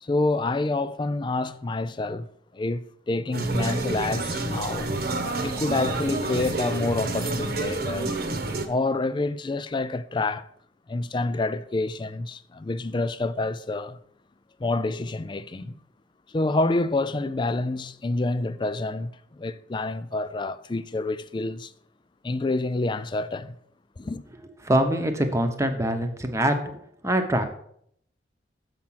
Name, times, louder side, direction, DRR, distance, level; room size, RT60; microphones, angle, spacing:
voice 1, 0.0-2.3 2.5-4.9 5.4-8.1 8.7-10.5 10.9-14.0 14.6-15.8 16.3-21.7 22.2-23.6 24.0-24.2, left 2 dB, 25° left, 0.4 m, -27 dB
sound 1, 3.3-8.7, right 2 dB, 60° right, 1.1 m, -29 dB
voice 2, 24.6-26.5 27.0-27.4, right 1 dB, 15° right, 0.9 m, -23 dB
7.4 x 5.9 x 5.7 m
head